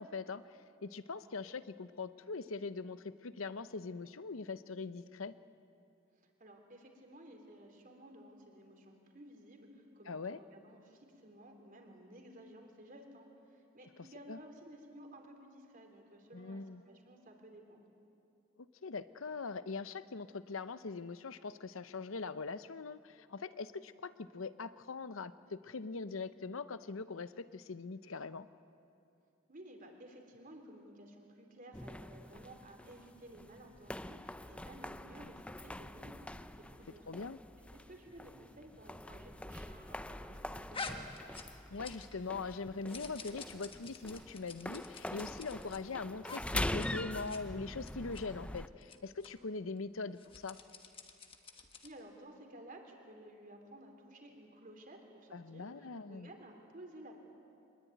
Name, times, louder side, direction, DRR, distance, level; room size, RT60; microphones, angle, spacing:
voice 1, 0.0-5.3 10.1-10.4 14.3-14.4 16.3-16.8 18.8-28.5 37.1-37.4 41.7-50.6 55.3-56.3, left 4 dB, 75° left, 14 dB, 0.7 m, -42 dB
voice 2, 6.2-17.9 29.5-37.1 37.6-41.1 51.5-57.2, right 1 dB, 40° right, 3 dB, 3.4 m, -55 dB
sound 1, 31.7-48.7, left 1 dB, 5° left, 0.5 m, -44 dB
sound 2, 40.7-42.2 42.5-45.8 46.2-46.4 46.7-46.9 47.2-47.4 47.8-48.2 48.8-49.0 49.2-49.3 50.1-52.0, left 4 dB, 25° left, 1.4 m, -48 dB
24.5 x 20.5 x 9.3 m, 2.7 s
head